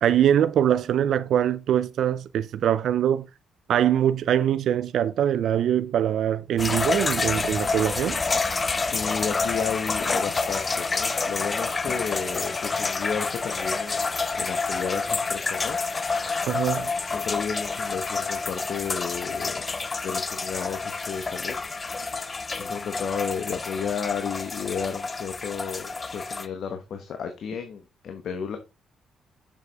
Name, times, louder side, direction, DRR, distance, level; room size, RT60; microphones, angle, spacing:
voice 1, 0.0-3.3 3.7-8.2 16.5-16.9, right 10 dB, 70° right, 0.4 m, -23 dB
sound 1, 6.6-26.5, left 4 dB, 30° left, 0.6 m, -28 dB
voice 2, 8.8-16.5 17.0-19.6 20.0-21.6 21.9-28.6, left 6 dB, 65° left, 1.1 m, -33 dB
7.0 x 6.6 x 3.4 m
cardioid pair, 90°, 0 cm